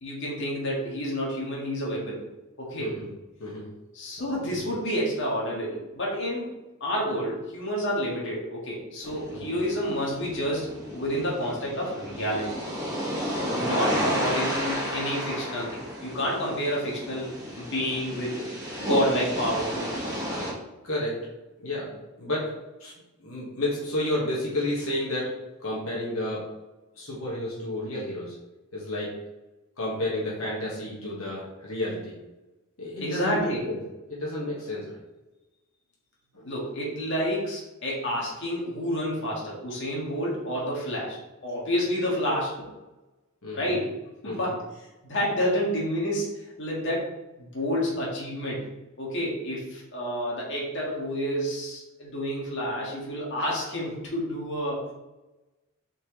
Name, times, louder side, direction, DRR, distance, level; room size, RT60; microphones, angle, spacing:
voice 1, 0.0-2.2 2.6-2.9 4.0-6.5 6.8-12.5 13.5-17.3 17.6-18.4 18.8-20.2 33.0-33.6 36.4-41.2 41.4-42.7 43.5-43.9 44.2-44.6 45.0-47.0 47.4-48.6 49.0-54.8, equal, 55° left, -4 dB, 1.8 m, -29 dB
voice 2, 4.2-4.6 9.3-9.4 14.0-14.1 20.8-21.2 21.6-21.9 22.2-22.5 22.8-22.9 23.2-25.3 25.6-26.5 27.0-28.4 28.7-29.1 29.8-32.2 32.8-33.8 34.1-35.0 36.3-36.5 43.4-43.8 44.2-44.5, left 1 dB, 70° left, -5 dB, 1.7 m, -31 dB
sound 1, 9.0-20.5, equal, 15° right, 1.8 m, -32 dB
6.4 x 4.6 x 3.2 m, 1.0 s
head